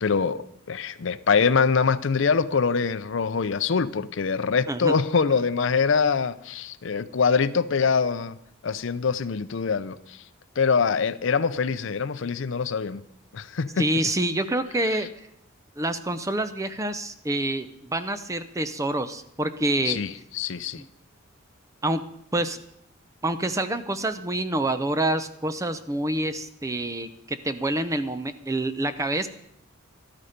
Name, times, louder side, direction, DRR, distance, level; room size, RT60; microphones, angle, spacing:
voice 1, 0.0-8.4 8.6-10.2 10.6-13.0 13.3-13.9 19.8-20.8, left 5 dB, 65° left, 15 dB, 0.5 m, -24 dB
voice 2, 13.8-15.3 15.8-20.0 20.8-20.9 21.8-22.0 22.3-22.6 23.2-29.3, right 1 dB, 15° right, 11 dB, 0.6 m, -27 dB
13.0 x 12.5 x 5.1 m, 0.74 s
head